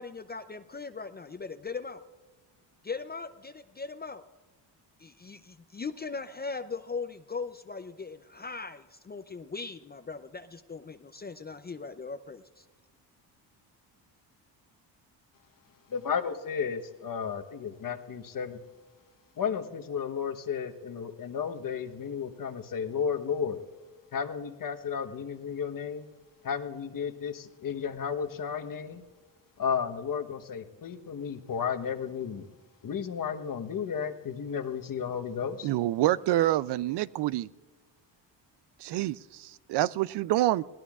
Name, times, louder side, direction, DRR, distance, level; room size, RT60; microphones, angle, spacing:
voice 1, 0.0-2.0 2.8-4.2 5.0-12.7, left 4 dB, 20° left, 9 dB, 0.5 m, -39 dB
voice 2, 15.9-18.6 19.4-23.6 24.1-26.0 26.4-29.0 29.6-32.5 32.8-35.7, left 7 dB, 45° left, 8 dB, 1.1 m, -33 dB
voice 3, 35.6-37.5 38.8-40.6, right 15 dB, 65° right, 18 dB, 0.5 m, -27 dB
21.0 x 16.5 x 2.4 m, 1.3 s
cardioid pair, 80°, 45 cm